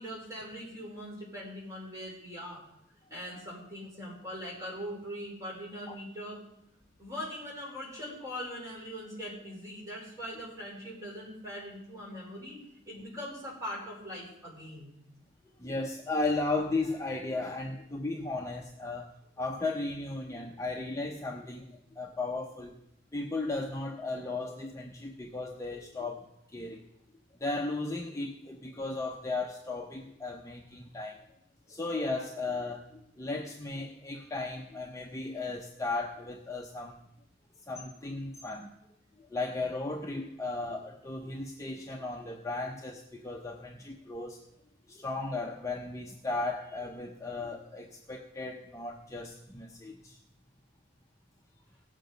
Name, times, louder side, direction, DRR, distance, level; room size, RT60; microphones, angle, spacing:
voice 1, 0.0-2.6 3.1-6.4 7.0-12.6 12.9-15.0, equal, 15° right, 4.4 m, -41 dB
voice 2, 15.6-22.7 23.1-26.9 27.4-31.2 31.7-37.0 37.7-38.7 39.2-44.4 44.9-50.2, left 2 dB, 15° left, 0.7 m, -35 dB
17.0 x 7.4 x 5.2 m
head